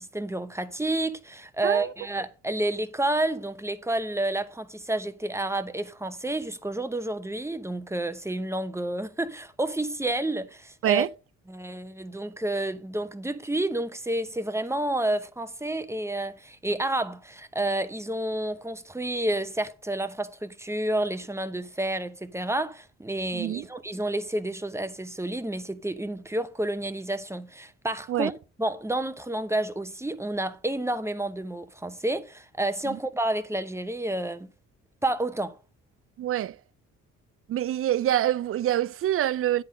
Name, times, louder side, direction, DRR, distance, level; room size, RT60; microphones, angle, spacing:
voice 1, 0.0-11.1 11.5-28.3 28.6-34.5 35.0-35.6, right 1 dB, 10° right, 0.8 m, -30 dB
voice 2, 23.3-23.7 28.1-28.3 32.9-33.0 36.2-36.6 37.5-39.6, right 12 dB, 50° right, 0.4 m, -26 dB
9.9 x 3.7 x 6.2 m
cardioid pair, 90°, 30 cm